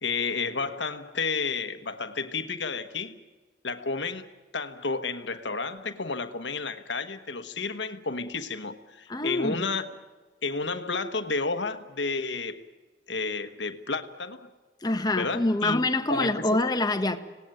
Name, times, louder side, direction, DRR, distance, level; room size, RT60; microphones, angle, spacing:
voice 1, 0.0-3.2 3.6-4.3 4.5-10.0 10.4-12.6 13.1-14.5 15.2-16.4, left 4 dB, 75° left, 10 dB, 1.4 m, -31 dB
voice 2, 9.1-9.6 14.8-17.2, left 2 dB, 25° left, 8 dB, 1.4 m, -25 dB
26.5 x 18.0 x 9.1 m, 1.3 s
head